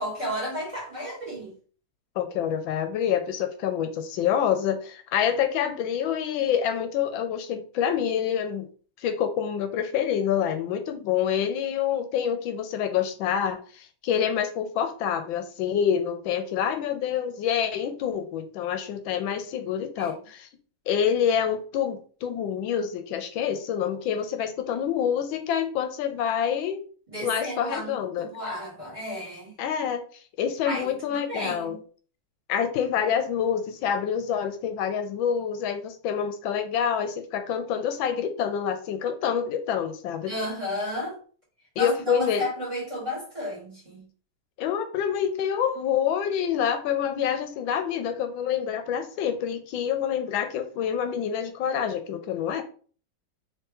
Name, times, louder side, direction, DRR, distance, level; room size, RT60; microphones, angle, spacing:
voice 1, 0.0-1.5 20.0-20.2 27.1-29.5 30.6-31.8 40.3-41.2 41.8-44.0, left 1 dB, 20° right, 1.4 m, -33 dB
voice 2, 2.2-8.7 9.0-20.5 20.9-26.8 27.2-28.3 29.6-30.0 30.4-31.8 32.5-40.3 41.8-42.4 44.6-52.6, left 8 dB, 80° left, 1.3 m, -27 dB
3.4 x 3.3 x 2.9 m
omnidirectional pair, 2.2 m